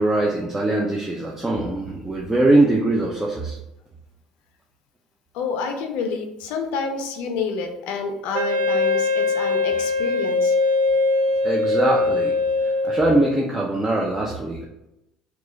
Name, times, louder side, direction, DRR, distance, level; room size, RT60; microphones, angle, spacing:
voice 1, 0.0-3.6 11.4-12.3 12.6-14.6, right 2 dB, 15° right, -2 dB, 0.5 m, -22 dB
voice 2, 5.3-10.6, left 5 dB, 70° left, 4 dB, 0.5 m, -28 dB
Wind instrument woodwind instrument, 8.3-13.4, left 3 dB, 75° right, 0.5 m, -21 dB
3.0 x 2.3 x 3.8 m, 0.89 s
supercardioid pair, 90°, 2 cm